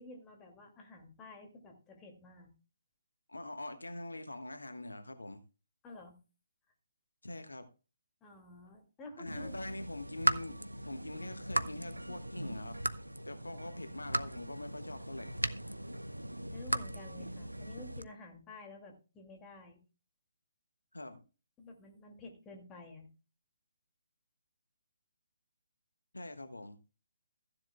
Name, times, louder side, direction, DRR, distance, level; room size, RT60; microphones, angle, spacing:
voice 1, 0.0-2.5 5.8-6.2 8.2-9.5 16.5-19.8 21.6-23.1, left 2 dB, 15° left, 2 dB, 2.4 m, -51 dB
voice 2, 3.3-5.4 7.2-7.7 9.2-10.6 10.9-12.8 13.2-15.3 15.6-15.7 20.9-21.2 26.1-26.8, left 2 dB, 75° left, 8 dB, 1.3 m, -44 dB
sound 1, 9.2-18.0, right 1 dB, 85° right, 0.8 m, -38 dB
15.0 x 10.5 x 2.3 m, 0.33 s
figure-of-eight pair, 140°, 0 cm